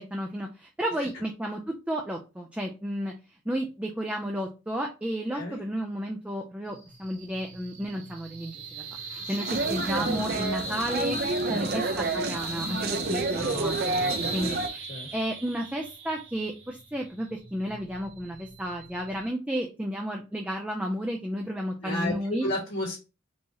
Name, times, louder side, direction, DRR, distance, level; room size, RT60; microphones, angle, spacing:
voice 1, 0.0-3.1 3.5-11.2 11.5-14.0 14.3-14.9 15.1-22.5, equal, 5° right, 1 dB, 0.4 m, -32 dB
sound 1, 6.7-19.3, right 3 dB, 70° right, 1.6 m, -38 dB
voice 2, 9.2-9.8 11.5-11.6 13.3-14.6 14.9-15.1 21.8-22.2 22.4-23.0, left 1 dB, 90° left, -9 dB, 2.2 m, -34 dB
sound 2, 9.5-14.7, right 2 dB, 50° right, 0.6 m, -29 dB
4.6 x 2.8 x 2.9 m, 0.29 s
head